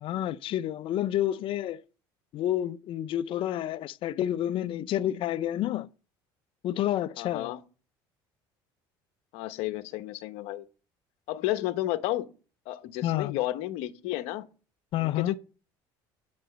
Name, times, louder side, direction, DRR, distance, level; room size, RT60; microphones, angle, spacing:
voice 1, 0.0-1.8 2.3-5.9 6.6-7.5 13.0-13.4 14.9-15.4, left 12 dB, 55° left, 0.6 m, -29 dB
voice 2, 7.2-7.6 9.3-10.6 11.3-12.3 12.7-14.5 15.0-15.4, left 15 dB, 75° left, 1.1 m, -32 dB
8.9 x 5.3 x 7.8 m
supercardioid pair, 100°, 10 cm